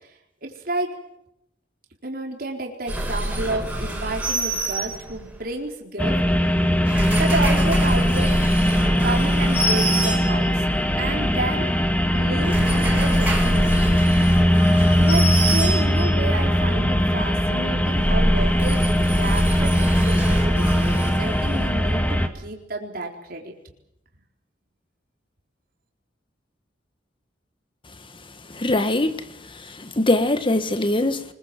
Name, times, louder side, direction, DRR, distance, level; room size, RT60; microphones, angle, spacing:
voice 1, 0.4-0.9 2.0-6.5 7.2-8.4 9.0-10.7 11.0-11.7 12.1-14.1 14.9-23.5, right 2 dB, 55° right, 1 dB, 4.2 m, -31 dB
sound 1, 2.9-5.4 6.7-10.7 12.2-16.3 17.8-21.9, right 1 dB, 5° right, 5.9 m, -26 dB
sound 2, 6.0-22.3, equal, 10° left, 1.7 m, -20 dB
voice 2, 28.5-31.2, left 2 dB, 30° left, 10 dB, 1.6 m, -22 dB
25.0 x 22.0 x 7.7 m, 0.81 s
head